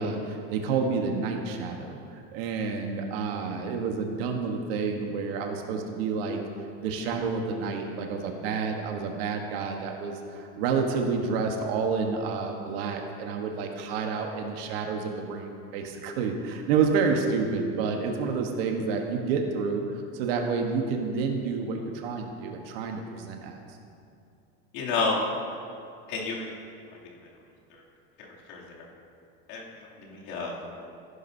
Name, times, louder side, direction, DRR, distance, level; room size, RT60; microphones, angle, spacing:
voice 1, 0.0-6.4 6.8-23.6, right 5 dB, 80° right, 3 dB, 1.2 m, -29 dB
voice 2, 24.7-25.2 26.1-26.5 28.2-28.8 29.5-30.9, left 4 dB, 65° left, -4 dB, 2.6 m, -31 dB
15.0 x 11.5 x 2.7 m, 2.5 s
cardioid pair, 180°, 29 cm